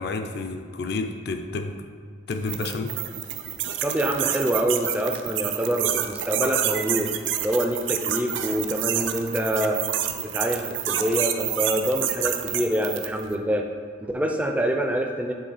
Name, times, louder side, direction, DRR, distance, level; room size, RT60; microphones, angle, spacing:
voice 1, 0.0-1.8 2.3-2.9, left 3 dB, 55° left, 6 dB, 0.4 m, -30 dB
sound 1, 2.3-13.2, right 11 dB, 75° right, 0.4 m, -28 dB
voice 2, 3.8-7.1 7.4-9.8 10.2-13.6 14.0-15.3, equal, 5° right, 3 dB, 0.4 m, -26 dB
7.6 x 3.5 x 4.1 m, 2.1 s
head